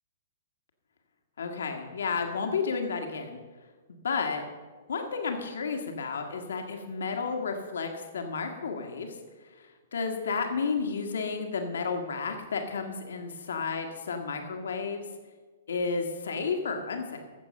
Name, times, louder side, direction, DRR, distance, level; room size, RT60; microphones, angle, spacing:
voice 1, 1.4-3.4 4.0-4.4 4.9-9.2 9.4-15.0 15.7-17.2, left 5 dB, 60° left, 5 dB, 1.5 m, -32 dB
15.5 x 6.9 x 5.4 m, 1.4 s
figure-of-eight pair, 110°, 0 cm